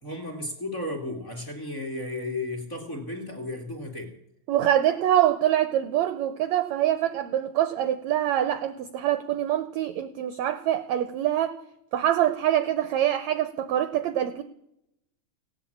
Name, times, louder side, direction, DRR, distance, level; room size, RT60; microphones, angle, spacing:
voice 1, 0.0-4.1, left 2 dB, 25° left, 2.2 m, -34 dB
voice 2, 4.5-11.6 11.9-14.4, right 11 dB, 75° right, 1.7 m, -25 dB
17.0 x 8.6 x 8.6 m
omnidirectional pair, 4.1 m